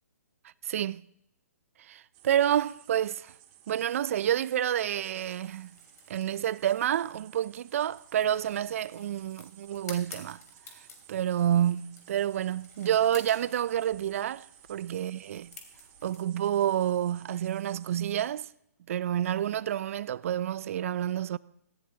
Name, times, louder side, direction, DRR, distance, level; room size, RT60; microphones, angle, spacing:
voice 1, 0.6-1.0 1.8-3.3 3.7-5.7 6.1-10.4 11.1-15.5 16.0-18.5 18.9-21.4, right 10 dB, 55° right, 0.4 m, -29 dB
sound 1, 2.1-18.3, right 11 dB, 30° right, 1.8 m, -57 dB
sound 2, 5.2-16.2, left 4 dB, 65° left, 3.4 m, -53 dB
17.5 x 16.0 x 2.8 m
hypercardioid pair, 135°, 9 cm